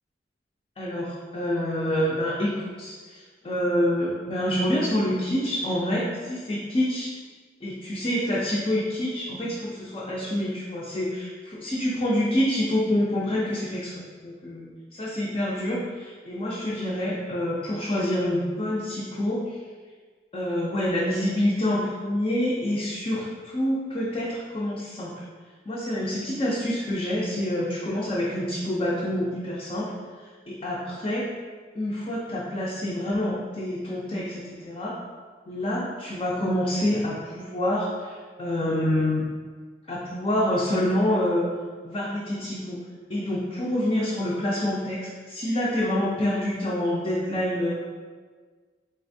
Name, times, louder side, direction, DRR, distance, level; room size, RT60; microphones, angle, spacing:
voice 1, 0.8-7.1 7.6-13.9 14.2-19.6 20.3-25.2 25.7-29.9 30.5-31.2 31.7-35.0 35.5-39.3 39.9-41.5 41.8-42.8 43.1-47.7, left 1 dB, 30° left, -6 dB, 0.4 m, -27 dB
3.9 x 3.2 x 2.6 m, 1.5 s
head